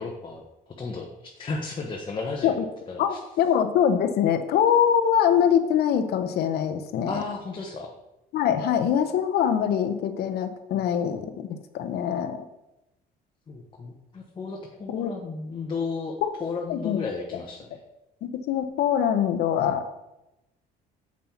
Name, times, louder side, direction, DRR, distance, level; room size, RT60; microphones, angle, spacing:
voice 1, 0.0-3.2 7.1-7.9 13.5-17.8, left 4 dB, 30° left, 0 dB, 1.0 m, -34 dB
voice 2, 3.0-7.2 8.3-12.5 14.9-15.1 16.2-16.3 16.7-17.1 18.2-19.9, left 8 dB, 70° left, 9 dB, 0.8 m, -23 dB
7.4 x 5.6 x 4.4 m, 0.93 s
cardioid pair, 110°, 17 cm